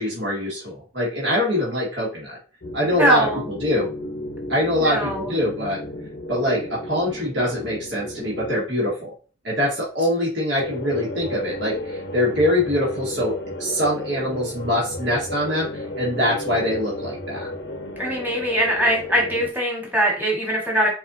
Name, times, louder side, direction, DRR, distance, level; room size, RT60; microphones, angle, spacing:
voice 1, 0.0-2.4 2.7-3.9 4.5-5.8 6.3-9.1 9.4-17.5, left 1 dB, 65° right, -5 dB, 1.8 m, -24 dB
sound 1, 2.6-8.6 10.6-19.5, left 1 dB, 60° left, 0.7 m, -33 dB
voice 2, 2.9-3.4 4.8-5.3 18.0-20.9, equal, 10° right, -2 dB, 1.8 m, -22 dB
4.4 x 4.2 x 2.7 m, 0.37 s
head